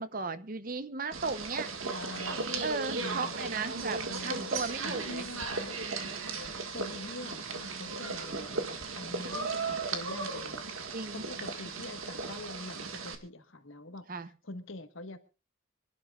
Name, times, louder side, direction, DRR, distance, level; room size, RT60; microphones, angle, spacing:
voice 1, 0.0-1.7 2.6-5.3 9.2-9.3 10.9-11.2 14.1-14.3, right 4 dB, 40° right, 0.8 m, -36 dB
sound 1, 1.1-13.2, right 4 dB, 85° right, 1.8 m, -36 dB
voice 2, 1.9-2.6 3.0-3.6 4.1-4.5 4.8-5.8 6.7-14.1 14.4-15.2, left 2 dB, 75° left, 1.5 m, -44 dB
25.5 x 12.0 x 2.4 m
head